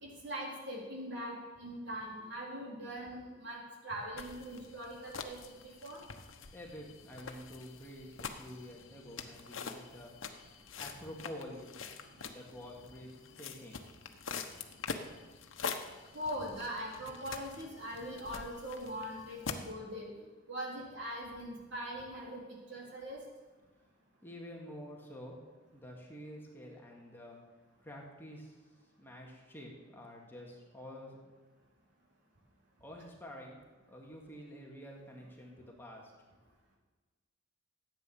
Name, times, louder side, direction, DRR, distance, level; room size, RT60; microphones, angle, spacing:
voice 1, 0.0-6.0 16.1-23.2, equal, 65° right, -3 dB, 3.9 m, -42 dB
sound 1, 4.2-19.7, left 5 dB, 80° left, 1.1 m, -45 dB
voice 2, 6.5-10.1 10.8-11.8 12.2-13.1 13.4-13.8 24.2-25.4 25.7-27.4 27.8-28.6 29.0-31.2 32.8-33.6 33.9-36.1, equal, 10° left, -2 dB, 2.1 m, -48 dB
14.0 x 9.1 x 7.1 m, 1.3 s
head